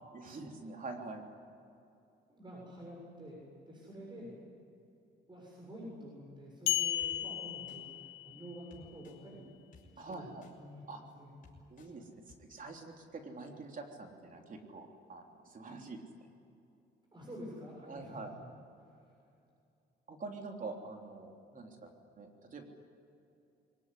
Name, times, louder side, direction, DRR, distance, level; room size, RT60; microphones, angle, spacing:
voice 1, 0.1-1.2 10.0-10.4 10.9-11.0 11.7-16.3 17.8-18.3 20.1-22.6, right 3 dB, 45° right, 2 dB, 3.4 m, -46 dB
voice 2, 2.3-3.4 3.7-4.3 5.3-9.5 9.8-10.3 10.6-10.8 11.2-11.4 17.1-18.5 18.8-19.1, equal, 25° right, -3 dB, 7.3 m, -49 dB
sound 1, 6.7-8.5, left 13 dB, 85° left, 1.4 m, -34 dB
sound 2, 7.0-7.1 7.7-7.8 8.7-9.2 9.7-9.8 10.4-10.5 11.1-11.2 11.4-11.9 12.3-12.4, left 5 dB, 45° left, 6.3 m, -58 dB
22.5 x 19.0 x 10.0 m, 2.7 s
cardioid pair, 90°, 20 cm